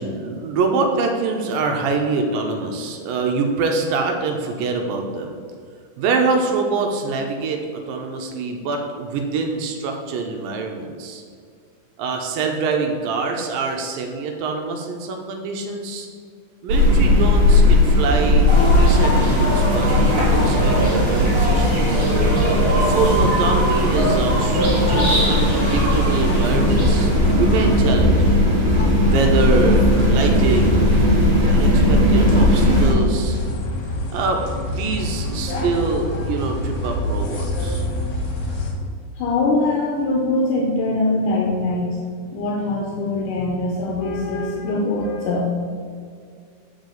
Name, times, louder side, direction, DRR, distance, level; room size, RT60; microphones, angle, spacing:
voice 1, 0.0-5.3 6.0-11.2 12.0-16.1 16.6-18.5 18.8-22.1 22.8-28.4 29.0-30.8 31.5-33.4 34.1-37.9, right 4 dB, 80° right, 3 dB, 2.3 m, -24 dB
sound 1, 16.7-32.9, left 1 dB, 45° right, 2.1 m, -17 dB
sound 2, 18.5-27.8, equal, 30° right, 1.1 m, -23 dB
sound 3, 25.2-38.7, left 1 dB, 65° left, 2.5 m, -25 dB
voice 2, 39.2-42.0 42.3-45.5, left 2 dB, 80° left, -2 dB, 2.1 m, -22 dB
7.2 x 5.5 x 3.9 m, 2.2 s
omnidirectional pair, 4.1 m